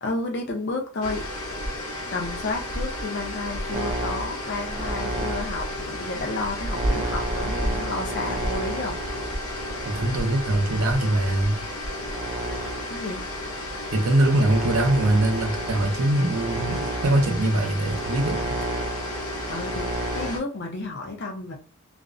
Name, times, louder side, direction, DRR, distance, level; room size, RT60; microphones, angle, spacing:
voice 1, 0.0-1.3 2.1-9.0 12.9-13.2 19.5-21.5, left 2 dB, 50° left, 0.5 m, -31 dB
sound 1, 1.0-20.4, left 1 dB, 90° left, 0.7 m, -32 dB
sound 2, 3.7-11.1 11.7-20.3, right 2 dB, 25° right, 0.4 m, -32 dB
voice 2, 9.8-11.6 13.9-18.6, right 1 dB, 70° right, 0.6 m, -22 dB
2.5 x 2.0 x 2.5 m
head